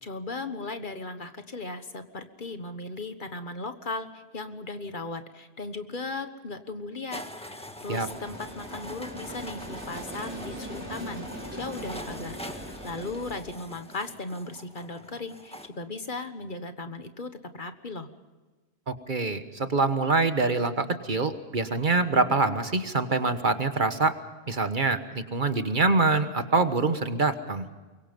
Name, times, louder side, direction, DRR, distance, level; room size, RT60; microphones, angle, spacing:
voice 1, 0.0-18.1, left 3 dB, 50° left, 9 dB, 1.5 m, -37 dB
sound 1, 7.1-15.7, left 1 dB, 5° left, 1.6 m, -43 dB
sound 2, 7.9-13.4, equal, 10° right, 4.5 m, -40 dB
voice 2, 18.9-24.1 24.5-27.7, right 3 dB, 50° right, 9 dB, 1.4 m, -25 dB
24.0 x 22.5 x 5.3 m, 1.3 s
omnidirectional pair, 1.1 m